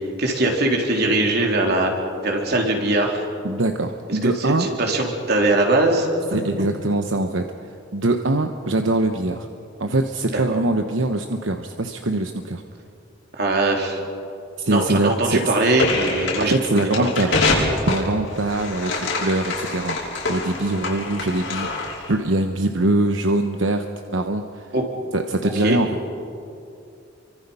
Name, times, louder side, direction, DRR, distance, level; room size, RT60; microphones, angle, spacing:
voice 1, 0.2-1.9 2.2-3.2 4.2-6.1 10.3-10.4 13.4-14.0 14.7-17.4 24.7-24.8 25.6-25.8, right 2 dB, 55° right, 1 dB, 3.6 m, -21 dB
voice 2, 3.4-4.7 6.3-7.5 7.9-9.5 9.8-12.6 14.6-15.4 16.5-17.3 17.9-20.0 20.3-23.8 24.1-24.7 25.1-25.9, right 2 dB, 80° right, 5 dB, 1.1 m, -23 dB
sound 1, 15.8-22.1, left 3 dB, 80° left, 5.8 m, -25 dB
29.5 x 24.5 x 5.6 m, 2.6 s
head